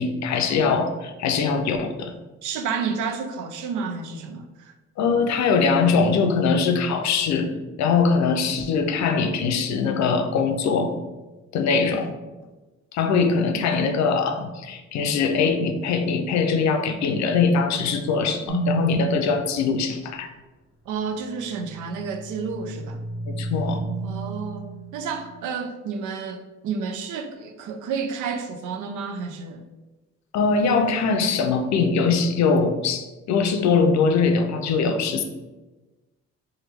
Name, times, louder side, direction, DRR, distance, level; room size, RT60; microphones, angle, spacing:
voice 1, 0.0-2.1 5.0-10.9 11.5-12.1 12.9-20.3 23.3-23.8 30.3-35.2, left 5 dB, 65° left, 6 dB, 0.5 m, -22 dB
voice 2, 2.4-4.7 20.9-23.0 24.0-29.6, right 5 dB, 80° right, 6 dB, 0.5 m, -30 dB
sound 1, 18.5-19.0 21.9-25.4, right 1 dB, 50° right, 1.5 m, -30 dB
3.1 x 2.3 x 3.3 m, 1.2 s
cardioid pair, 90°, 30 cm